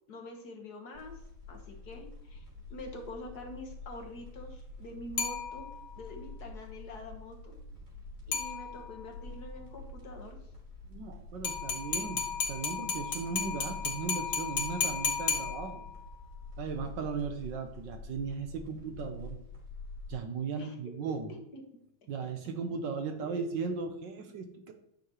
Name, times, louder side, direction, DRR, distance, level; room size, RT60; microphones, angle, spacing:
voice 1, 0.1-1.2 1.5-5.7 5.9-7.6 8.3-10.5 20.6-20.8 21.0-21.6 23.2-23.6 24.5-24.6, left 2 dB, 55° left, 3 dB, 1.5 m, -46 dB
sound 1, 0.9-20.2, left 3 dB, 30° right, 3.4 m, -47 dB
sound 2, 5.2-6.0 8.3-9.1 11.4-16.1, left 6 dB, 90° left, 2.3 m, -34 dB
voice 2, 10.9-15.9 16.6-19.4 20.1-21.3 22.1-24.7, right 5 dB, 70° right, 6 dB, 1.3 m, -37 dB
9.4 x 5.7 x 2.9 m, 0.76 s
omnidirectional pair, 2.2 m